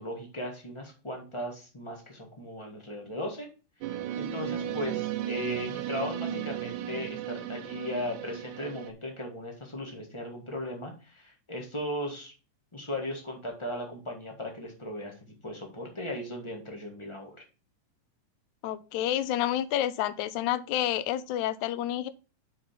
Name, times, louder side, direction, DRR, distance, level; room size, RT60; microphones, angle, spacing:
voice 1, 0.0-3.5 3.8-12.3 12.7-15.1 15.4-17.4, left 1 dB, 25° left, 1 dB, 0.6 m, -37 dB
sound 1, 3.8-8.9, right 10 dB, 85° right, 2.1 m, -35 dB
voice 2, 18.6-22.1, left 12 dB, 80° left, 14 dB, 2.0 m, -29 dB
6.1 x 4.8 x 5.8 m, 0.33 s
omnidirectional pair, 3.5 m